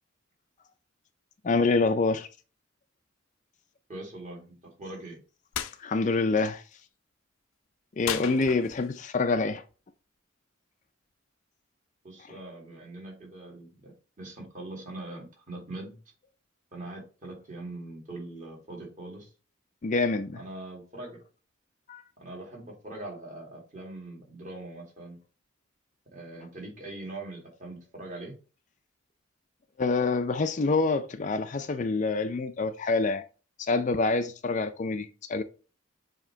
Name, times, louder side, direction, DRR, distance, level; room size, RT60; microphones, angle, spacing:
voice 1, 1.4-2.3 5.8-6.6 8.0-9.6 19.8-20.4 21.9-22.0 29.8-33.2 33.6-35.4, left 3 dB, 35° left, 0.4 m, -26 dB
voice 2, 3.9-5.2 12.0-13.9 14.2-16.0 16.7-19.3 20.3-21.2 22.2-25.2 26.1-28.3, right 2 dB, 40° right, 2.4 m, -42 dB
sound 1, 5.5-5.8 8.0-9.0, left 8 dB, 85° left, 0.6 m, -34 dB
7.3 x 2.9 x 4.5 m
head